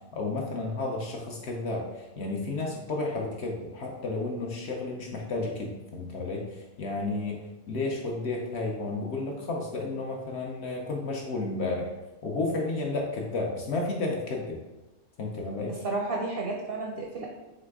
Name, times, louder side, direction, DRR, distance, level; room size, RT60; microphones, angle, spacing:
voice 1, 0.1-11.9 12.2-14.6 15.2-15.8, left 2 dB, 60° left, 0 dB, 0.7 m, -32 dB
voice 2, 15.7-17.3, right 3 dB, 60° right, 0 dB, 0.6 m, -32 dB
3.9 x 3.3 x 3.5 m, 1.1 s
omnidirectional pair, 1.5 m